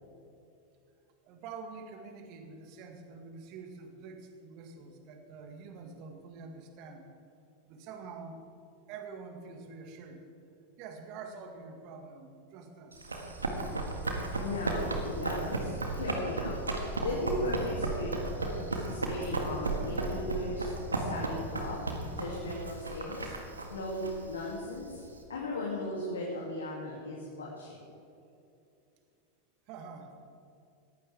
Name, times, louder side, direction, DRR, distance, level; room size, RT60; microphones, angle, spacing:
voice 1, 1.2-7.1 7.7-8.4 8.9-10.3 10.8-13.1 29.7-30.3, right 4 dB, 45° right, 5 dB, 2.0 m, -46 dB
Run, 12.9-25.2, right 2 dB, 85° right, 2.0 m, -34 dB
voice 2, 14.4-16.6 17.0-18.1 18.4-23.3 23.7-25.0 25.3-27.8, left 1 dB, 75° left, -4 dB, 2.9 m, -37 dB
20.5 x 15.0 x 3.6 m, 2.6 s
figure-of-eight pair, 90°, 0 cm